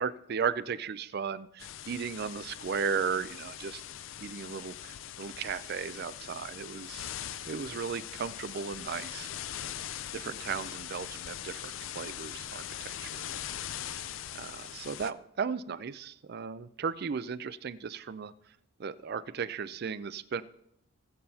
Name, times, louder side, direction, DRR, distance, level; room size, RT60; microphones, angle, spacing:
voice 1, 0.0-3.8 4.2-7.1 7.5-9.3 10.1-13.3 14.3-18.3 18.8-20.4, right 6 dB, 45° right, 16 dB, 0.4 m, -35 dB
sound 1, 1.6-15.1, left 11 dB, 65° left, 0.4 m, -41 dB
19.0 x 7.6 x 2.8 m, 0.78 s
head